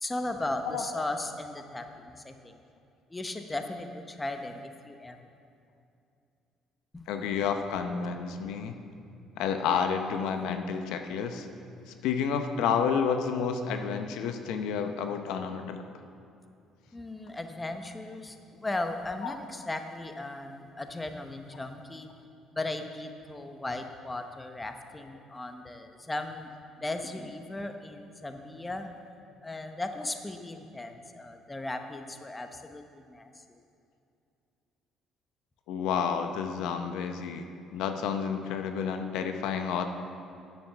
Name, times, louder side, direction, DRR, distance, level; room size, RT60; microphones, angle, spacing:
voice 1, 0.0-2.5 3.1-5.2 6.9-7.0 16.9-22.1 22.5-26.5 26.8-28.9 29.4-33.6, left 2 dB, 15° left, 6 dB, 0.9 m, -37 dB
voice 2, 0.6-1.0 7.1-8.8 9.4-11.5 12.0-15.8 19.2-19.4 35.7-37.5 37.7-39.8, left 6 dB, 80° left, 6 dB, 0.8 m, -30 dB
9.5 x 7.0 x 6.9 m, 2.6 s
cardioid pair, 90°, 0 cm